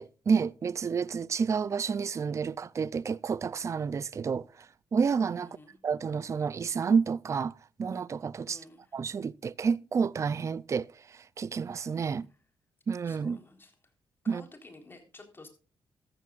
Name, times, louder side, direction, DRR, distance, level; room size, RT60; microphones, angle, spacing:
voice 1, 0.0-4.7 4.9-5.5 5.8-8.6 8.9-12.3 12.9-13.4 14.3-14.4, right 6 dB, 35° right, 0.5 m, -30 dB
voice 2, 5.4-5.8 8.4-9.0 12.1-12.3 13.0-13.9 14.2-15.5, left 2 dB, 25° left, 3.9 m, -52 dB
14.0 x 14.0 x 2.5 m
cardioid pair, 100°, 8 cm